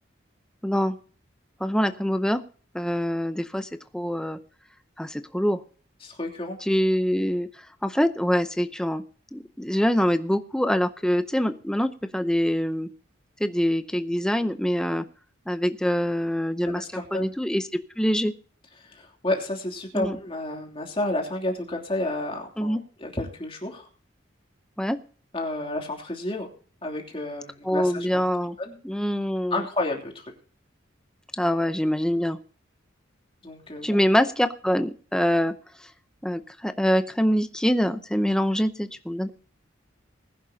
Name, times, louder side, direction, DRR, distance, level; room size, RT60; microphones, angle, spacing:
voice 1, 0.6-1.0 1.6-2.4 2.7-4.4 5.0-5.6 6.6-7.5 7.8-9.0 9.3-12.9 13.4-15.0 15.5-17.7 18.0-18.3 19.9-20.2 22.6-22.8 24.8-25.0 27.6-28.6 28.8-29.6 31.4-32.4 33.8-35.5 36.2-39.3, equal, 5° left, 9 dB, 0.7 m, -24 dB
voice 2, 6.0-6.6 16.6-17.3 18.8-23.9 25.3-26.5 26.8-28.2 28.6-28.8 29.5-30.3 33.4-33.9, left 2 dB, 30° left, 1 dB, 3.0 m, -31 dB
21.0 x 11.0 x 2.8 m, 0.41 s
head